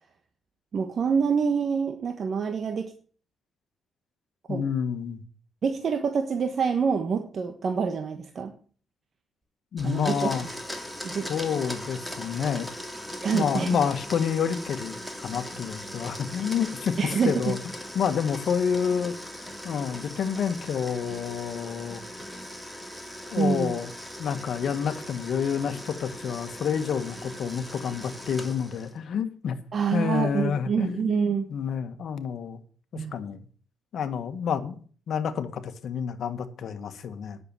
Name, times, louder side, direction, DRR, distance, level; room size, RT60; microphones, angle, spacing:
voice 1, 0.7-2.9 4.5-4.7 5.6-8.5 9.8-10.3 11.0-11.3 13.2-13.8 17.0-17.5 23.4-23.8 29.7-31.5 32.9-33.1, right 6 dB, 50° right, 6 dB, 1.4 m, -26 dB
voice 2, 4.5-5.2 9.7-10.5 11.3-12.7 13.3-16.9 17.2-17.6 17.9-19.1 19.6-22.0 23.3-23.9 24.2-29.6 29.9-31.1 31.5-32.6 32.9-33.4 33.9-37.4, left 7 dB, 65° left, 9 dB, 1.5 m, -29 dB
Domestic sounds home sounds, 9.8-29.0, equal, ahead, 2.8 m, -39 dB
10.0 x 6.9 x 8.4 m, 0.43 s
cardioid pair, 90°, 0 cm